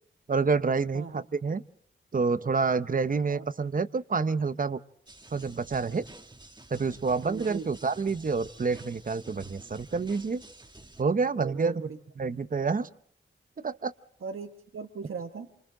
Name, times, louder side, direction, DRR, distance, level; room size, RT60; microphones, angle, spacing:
voice 1, 0.3-1.6 2.1-4.8 5.3-6.1 6.7-10.4 11.0-11.8 12.2-12.9 13.6-13.9, right 4 dB, 40° right, 13 dB, 0.8 m, -28 dB
sound 1, 5.1-11.0, right 2 dB, 20° right, 1.5 m, -50 dB
voice 2, 7.2-7.7 11.4-12.0 14.2-15.5, right 5 dB, 80° right, 5 dB, 1.3 m, -39 dB
28.0 x 25.5 x 3.9 m, 0.65 s
wide cardioid pair, 105°, 21 cm